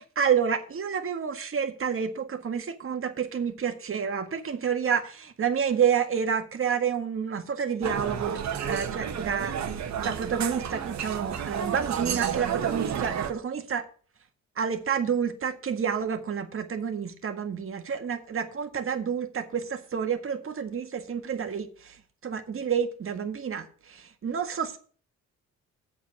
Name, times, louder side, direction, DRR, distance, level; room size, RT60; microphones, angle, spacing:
voice 1, 0.0-13.9 14.6-22.0 22.2-24.8, right 7 dB, 45° right, 1.8 m, -29 dB
sound 1, 7.8-13.3, right 8 dB, 65° right, 1.6 m, -31 dB
8.3 x 7.6 x 5.8 m
cardioid pair, 90°, 30 cm